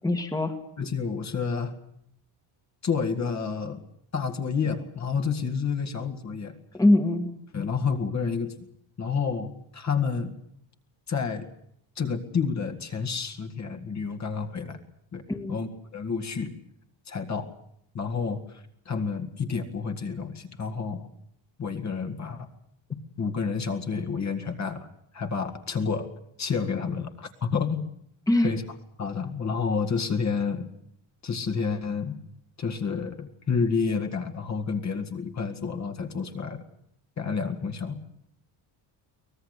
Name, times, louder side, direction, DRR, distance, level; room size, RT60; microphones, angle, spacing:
voice 1, 0.0-0.6 6.7-7.3 15.3-15.6 28.3-28.5, left 1 dB, 5° left, 6 dB, 1.8 m, -22 dB
voice 2, 0.8-1.7 2.8-3.8 4.1-6.5 7.5-8.5 9.0-10.3 11.1-11.5 12.0-14.8 15.1-15.2 15.5-16.5 17.1-17.5 17.9-21.1 21.6-22.5 23.2-24.9 25.1-26.1 26.4-27.9 28.4-28.6 29.0-30.7 31.2-32.2 32.6-36.6 37.2-38.0, left 5 dB, 35° left, 6 dB, 2.0 m, -29 dB
24.0 x 18.5 x 8.2 m, 0.73 s
cardioid pair, 150°, 49 cm